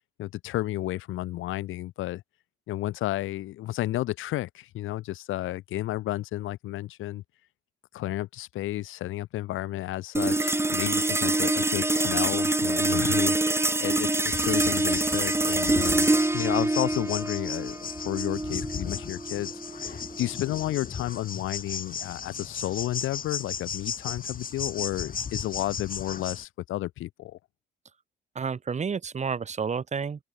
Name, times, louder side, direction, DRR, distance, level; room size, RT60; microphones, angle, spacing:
voice 1, 0.2-2.2 2.7-7.2 7.9-16.1 16.3-27.4, left 15 dB, 90° left, 5.9 m, -32 dB
sound 1, 10.1-20.8, right 2 dB, 15° right, 2.1 m, -26 dB
sound 2, 14.2-26.4, left 6 dB, 45° left, 4.0 m, -36 dB
voice 2, 28.3-30.2, right 6 dB, 35° right, 1.6 m, -30 dB
open air
cardioid pair, 90°, 20 cm